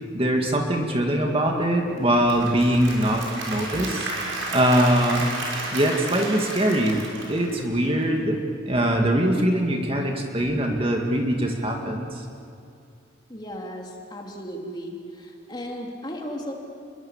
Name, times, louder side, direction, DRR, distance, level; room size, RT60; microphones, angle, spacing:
voice 1, 0.1-4.1 4.5-5.3 5.7-7.0 7.3-8.4 8.7-12.2, right 1 dB, 30° right, 1 dB, 2.3 m, -22 dB
Applause / Crowd, 2.0-8.0, right 2 dB, 80° right, 6.4 m, -32 dB
voice 2, 13.3-16.5, equal, 20° left, 0 dB, 3.2 m, -35 dB
29.0 x 22.5 x 7.5 m, 2.5 s
head